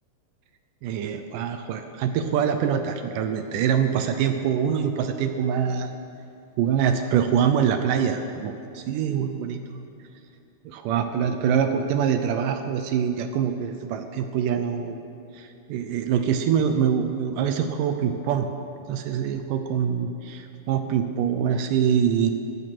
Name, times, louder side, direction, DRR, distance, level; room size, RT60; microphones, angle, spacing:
voice 1, 0.8-5.9 6.6-9.8 10.7-15.0 15.3-18.5 18.9-22.3, right 8 dB, 80° right, 7 dB, 2.0 m, -24 dB
17.0 x 12.5 x 6.0 m, 2.6 s
omnidirectional pair, 4.4 m